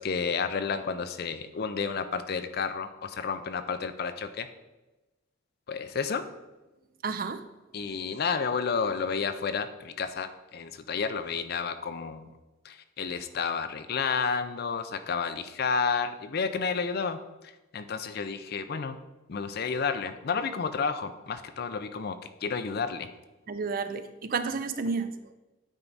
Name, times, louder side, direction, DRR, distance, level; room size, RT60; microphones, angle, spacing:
voice 1, 0.0-4.5 5.7-6.2 7.7-12.3 12.6-17.2 17.7-19.0 19.3-23.1, left 5 dB, 50° left, 10 dB, 0.4 m, -31 dB
voice 2, 7.0-7.4 23.5-25.1, right 4 dB, 45° right, 10 dB, 0.4 m, -31 dB
9.0 x 4.5 x 4.0 m, 1.1 s
head